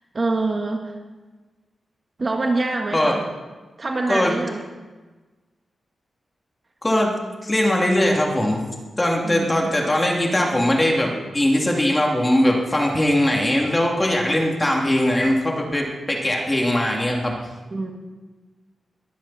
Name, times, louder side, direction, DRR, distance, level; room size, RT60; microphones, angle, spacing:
voice 1, 0.1-1.0 2.2-3.2 3.8-4.7 9.2-9.8 17.7-17.9, right 2 dB, 35° right, 2 dB, 1.9 m, -25 dB
voice 2, 6.8-7.1 7.4-8.7 9.0-17.4, left 1 dB, 15° left, -1 dB, 3.0 m, -20 dB
22.0 x 15.0 x 4.4 m, 1.3 s
wide cardioid pair, 130°, 0 cm